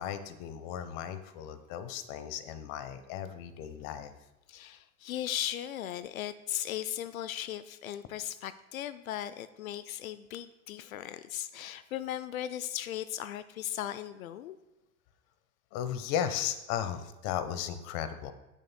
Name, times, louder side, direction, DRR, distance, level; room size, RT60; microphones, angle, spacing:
voice 1, 0.0-4.1 15.7-18.3, left 9 dB, 50° left, 11 dB, 1.0 m, -35 dB
voice 2, 4.5-14.6, left 11 dB, 85° left, 14 dB, 0.5 m, -37 dB
16.5 x 6.5 x 2.2 m, 1.0 s
hypercardioid pair, 85°, 41 cm